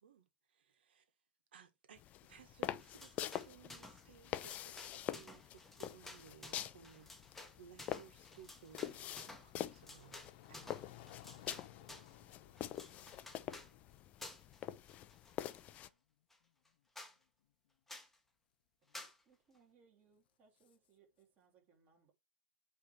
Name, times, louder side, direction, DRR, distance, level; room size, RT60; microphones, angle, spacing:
voice 1, 0.0-1.1 1.5-2.0 2.3-7.1 7.6-10.2 10.5-10.7, right 8 dB, 85° right, 1.8 m, -60 dB
sound 1, 2.0-15.9, left 12 dB, 25° left, 0.4 m, -46 dB
sound 2, 2.8-4.0 4.3-12.2 12.6-13.7 14.2-14.6 14.9-15.8 16.3-16.4 16.6-16.7 16.9-17.2 17.9-18.1 18.9-19.2, left 2 dB, 5° left, 1.0 m, -54 dB
car sound, 8.3-14.3, left 13 dB, 50° left, 1.0 m, -60 dB
voice 2, 16.4-16.8 18.8-19.0, left 13 dB, 70° left, 0.7 m, -81 dB
voice 3, 18.9-22.1, right 6 dB, 30° right, 3.0 m, -70 dB
8.7 x 3.4 x 4.5 m
supercardioid pair, 155°, 6 cm